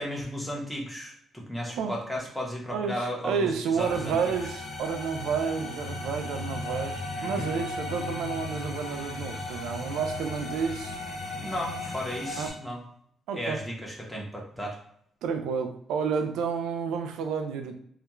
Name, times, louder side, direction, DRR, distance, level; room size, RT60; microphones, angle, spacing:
voice 1, 0.0-3.5 3.7-4.2 7.2-7.5 11.3-12.8 13.3-14.8, equal, ahead, -2 dB, 0.7 m, -34 dB
voice 2, 2.7-11.0 12.4-12.5 13.3-13.6 15.2-17.7, right 6 dB, 85° right, 6 dB, 0.3 m, -30 dB
sound 1, 3.8-12.5, left 2 dB, 55° left, 0.8 m, -36 dB
2.3 x 2.1 x 2.9 m, 0.67 s
cardioid pair, 90°, 0 cm